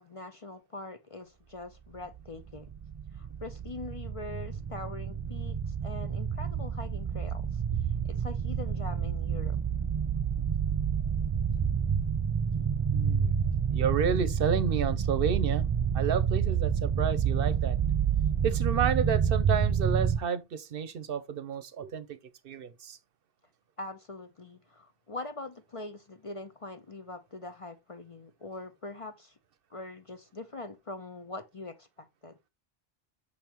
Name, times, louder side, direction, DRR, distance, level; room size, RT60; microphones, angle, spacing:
voice 1, 0.0-2.7 3.1-7.6 8.0-9.6 23.8-29.3 29.7-32.3, left 2 dB, 40° left, 0.6 m, -43 dB
sound 1, 2.2-20.2, right 7 dB, 50° right, 0.4 m, -29 dB
voice 2, 12.9-13.3 13.7-15.6 15.9-17.8 18.4-22.2 22.4-23.0, right 7 dB, 65° right, 0.8 m, -30 dB
6.3 x 5.4 x 2.9 m
omnidirectional pair, 1.1 m